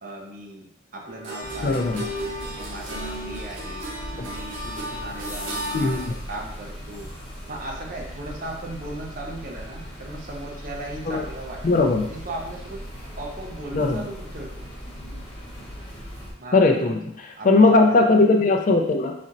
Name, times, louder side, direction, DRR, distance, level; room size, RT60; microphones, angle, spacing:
voice 1, 0.0-1.9 2.2-3.9 4.2-7.1 7.5-12.8 13.2-14.7 16.4-17.5 17.8-18.0, right 2 dB, 45° right, 0 dB, 0.7 m, -37 dB
sound 1, 1.1-6.1, equal, 75° right, 1.0 m, -34 dB
sound 2, 1.4-16.3, equal, 25° left, 1.0 m, -39 dB
voice 2, 1.6-2.1 4.2-4.3 5.7-6.1 11.1-11.2 11.6-12.1 13.7-14.0 16.5-19.1, left 3 dB, 40° left, 3 dB, 0.4 m, -19 dB
4.2 x 4.2 x 2.5 m, 0.77 s
head